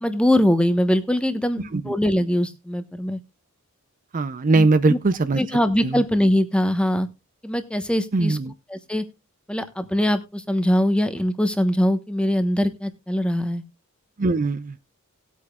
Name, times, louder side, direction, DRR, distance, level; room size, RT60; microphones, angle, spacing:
voice 1, 0.0-3.2 4.5-5.0 5.4-7.1 7.4-8.4 8.7-9.0 9.5-13.6, equal, 5° left, 1.0 m, -22 dB
voice 2, 4.1-5.4 5.8-6.0 8.1-8.5 14.2-14.8, right 3 dB, 40° right, 0.5 m, -21 dB
19.0 x 8.4 x 2.3 m
head